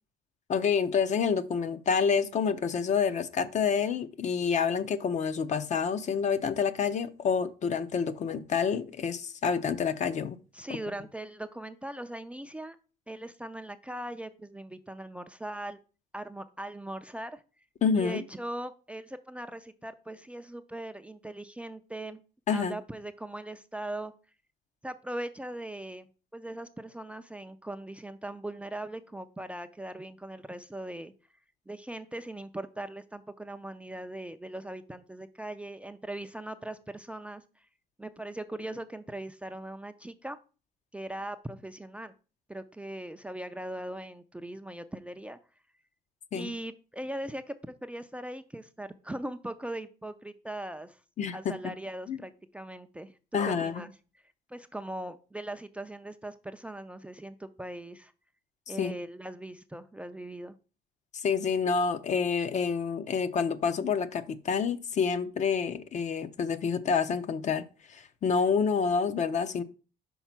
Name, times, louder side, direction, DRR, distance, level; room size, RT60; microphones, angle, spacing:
voice 1, 0.5-10.4 17.8-18.2 22.5-22.7 46.3-46.5 51.2-51.5 52.1-52.2 53.3-53.8 58.8-58.9 61.1-67.6 67.9-69.6, left 6 dB, 45° left, 0.7 m, -28 dB
voice 2, 10.5-12.8 13.1-15.8 16.1-17.4 17.9-22.2 22.5-24.1 24.8-31.1 31.7-37.7 38.0-40.4 40.9-42.1 42.5-45.4 46.3-47.5 47.8-51.0 51.3-53.2 53.5-53.9 54.5-58.1 58.7-60.5, right 1 dB, 5° right, 0.4 m, -40 dB
5.5 x 4.1 x 5.9 m
cardioid pair, 110°, 17 cm